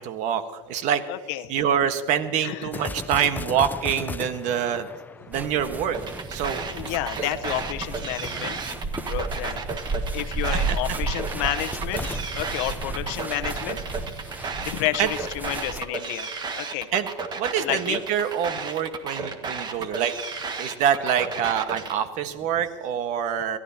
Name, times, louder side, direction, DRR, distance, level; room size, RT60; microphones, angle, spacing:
voice 1, 0.0-1.0 1.5-4.9 5.3-6.0 6.3-6.6 7.2-7.3 8.3-8.5 10.4-10.8 15.0-15.1 16.9-17.1 17.3-20.1 20.6-23.6, right 8 dB, 50° right, 9 dB, 1.4 m, -25 dB
voice 2, 1.1-1.5 2.4-2.8 6.7-9.6 10.1-13.8 14.1-16.3 16.6-16.9 17.6-18.0, left 15 dB, 65° left, 10 dB, 0.9 m, -31 dB
sound 1, 2.7-6.2 11.8-13.9, left 3 dB, 10° left, 0.5 m, -36 dB
sound 2, 5.3-15.8, right 3 dB, 10° right, 0.9 m, -33 dB
sound 3, 5.9-21.9, right 4 dB, 30° right, 1.6 m, -33 dB
29.0 x 13.0 x 2.9 m, 1.4 s
supercardioid pair, 120°, 16 cm